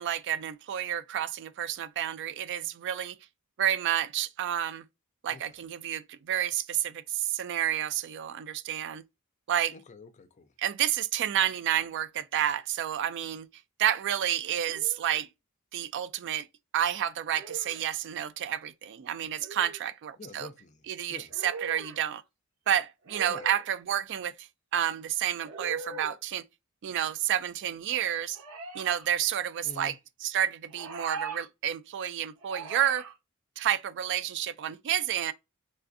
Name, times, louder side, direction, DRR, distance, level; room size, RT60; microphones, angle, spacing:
voice 1, 0.0-3.2 3.6-4.8 5.2-9.0 9.5-9.7 10.6-13.5 13.8-15.3 15.7-16.5 16.7-20.5 20.9-22.2 22.7-24.3 24.7-26.4 26.8-28.4 28.7-29.9 30.2-33.1 33.6-35.3, right 10 dB, 55° right, 0.3 m, -30 dB
voice 2, 5.3-5.6 9.7-10.5 20.2-20.8 21.1-21.3 23.3-23.5 29.6-30.0, left 3 dB, 35° left, 0.4 m, -47 dB
sound 1, 14.7-15.3 17.3-17.8 19.4-19.9 21.3-22.0 23.0-23.6 25.4-26.2 28.3-29.1 30.7-31.5 32.4-33.1, right 4 dB, 85° right, 0.9 m, -41 dB
3.4 x 2.4 x 2.5 m
head